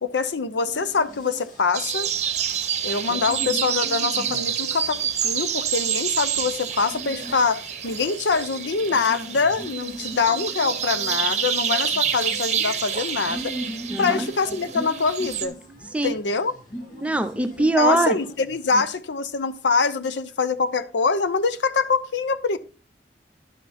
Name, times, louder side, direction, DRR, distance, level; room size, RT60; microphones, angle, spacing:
voice 1, 0.0-2.1 2.8-13.5 14.0-15.6 16.0-16.5 17.8-22.6, left 4 dB, 85° left, 0.7 m, -24 dB
sound 1, 0.6-18.7, right 1 dB, 50° left, 2.0 m, -40 dB
sound 2, 1.7-15.5, right 8 dB, 40° right, 0.9 m, -28 dB
voice 2, 13.9-14.3 15.9-16.1 17.0-18.2, right 2 dB, 10° right, 0.7 m, -22 dB
11.0 x 5.7 x 4.2 m
head